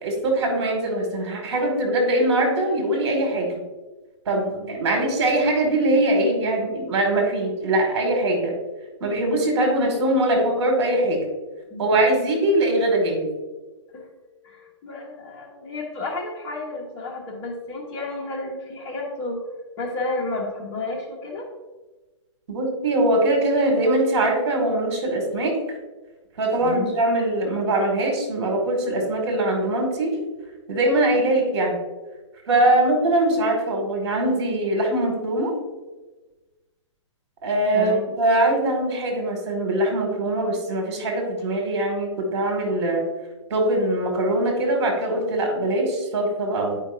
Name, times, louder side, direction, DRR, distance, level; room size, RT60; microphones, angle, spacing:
voice 1, 0.0-3.5 4.3-8.5 9.0-11.2 11.8-13.3 22.5-25.6 26.4-30.2 30.7-31.8 32.5-35.5 37.4-43.0 43.5-46.8, right 1 dB, 55° right, 2 dB, 2.1 m, -22 dB
voice 2, 4.3-5.0 11.7-12.1 13.9-14.1 14.4-19.4 19.8-21.4 26.6-26.9 32.5-32.6 37.7-38.0, left 2 dB, 25° left, -1 dB, 1.3 m, -32 dB
9.9 x 5.1 x 2.6 m, 1.2 s
hypercardioid pair, 155°, 16 cm